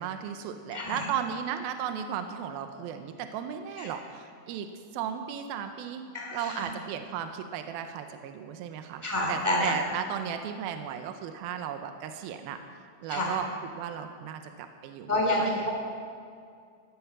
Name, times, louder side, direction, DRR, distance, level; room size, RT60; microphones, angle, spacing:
voice 1, 0.0-12.6 13.0-15.7, right 8 dB, 85° right, 7 dB, 2.6 m, -35 dB
voice 2, 0.7-1.0 3.8-3.9 6.1-6.7 9.0-9.7 13.1-13.3 15.1-15.7, left 1 dB, 5° right, -1 dB, 2.1 m, -28 dB
17.0 x 11.5 x 6.1 m, 2.2 s
omnidirectional pair, 4.3 m